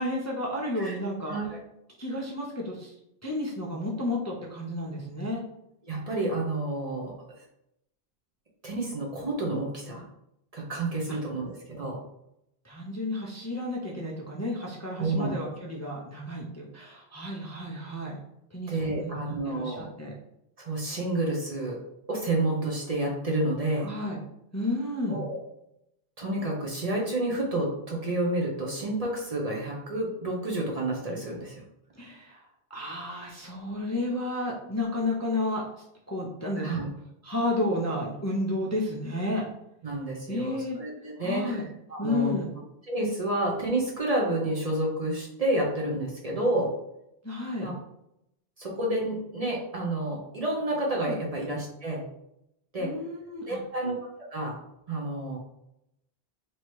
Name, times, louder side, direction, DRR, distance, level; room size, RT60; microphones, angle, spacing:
voice 1, 0.0-1.4 2.0-3.0 3.2-5.4 12.6-18.2 18.5-20.1 23.8-24.2 24.5-25.2 32.0-32.4 32.7-35.6 36.1-36.9 37.2-39.5 40.3-40.8 41.2-41.6 42.0-42.5 47.2-47.7 50.9-51.2 52.8-53.6, left 1 dB, 20° left, -3 dB, 0.5 m, -32 dB
voice 2, 1.2-1.6 5.8-7.4 8.6-10.0 10.5-12.0 15.0-15.3 18.7-19.9 20.6-21.8 22.1-23.9 25.1-25.4 26.2-31.6 36.6-36.9 39.8-42.3 42.9-46.7 47.6-47.7 48.6-52.0 52.7-52.9 53.5-53.9 54.3-54.6 54.9-55.4, right 1 dB, 40° right, -1 dB, 0.8 m, -30 dB
3.1 x 2.8 x 4.6 m, 0.81 s
omnidirectional pair, 1.0 m